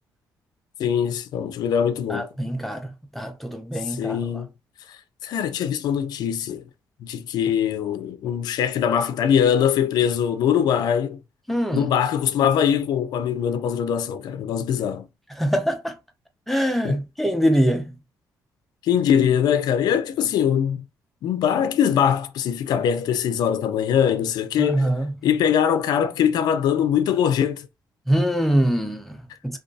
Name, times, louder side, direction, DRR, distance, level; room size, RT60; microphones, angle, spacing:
voice 1, 0.8-2.3 3.9-4.5 4.9-6.6 7.0-11.2 11.7-15.1 16.8-17.0 18.8-20.8 21.2-24.9 25.2-27.7, left 8 dB, 70° left, 0.4 m, -22 dB
voice 2, 2.1-4.4 11.5-11.9 15.4-15.9 16.5-17.9 24.6-25.1 28.1-29.6, equal, 5° left, 0.4 m, -24 dB
2.5 x 2.2 x 2.3 m
cardioid pair, 130°, 7 cm